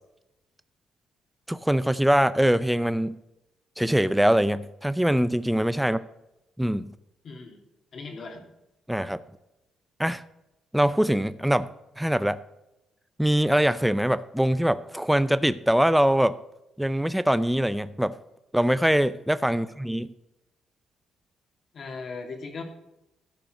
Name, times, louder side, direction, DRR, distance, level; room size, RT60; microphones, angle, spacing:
voice 1, 1.5-3.1 3.8-6.0 6.6-6.9 8.9-9.2 10.0-10.2 10.7-11.7 12.0-12.4 13.2-16.4 16.8-18.2 18.5-20.1, equal, 5° right, 14 dB, 0.5 m, -23 dB
voice 2, 7.2-7.6 7.9-8.5 19.5-19.7 21.7-22.6, left 4 dB, 55° left, 3 dB, 2.7 m, -39 dB
13.0 x 5.6 x 6.6 m, 0.91 s
cardioid pair, 90°, 0 cm